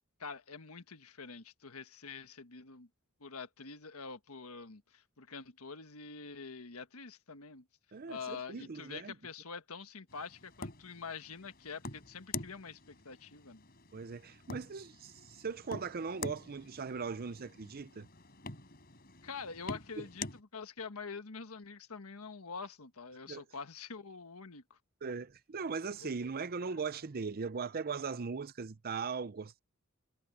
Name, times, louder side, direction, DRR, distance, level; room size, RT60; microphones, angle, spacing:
voice 1, 0.2-2.9 3.2-7.7 8.1-13.6 19.2-24.8 26.0-26.1, left 5 dB, 90° left, 1.4 m, -46 dB
voice 2, 7.9-9.1 13.9-18.1 20.0-20.1 23.3-23.4 25.0-29.6, right 5 dB, 45° right, 0.6 m, -39 dB
sound 1, 10.1-20.4, left 3 dB, 45° left, 4.5 m, -46 dB
head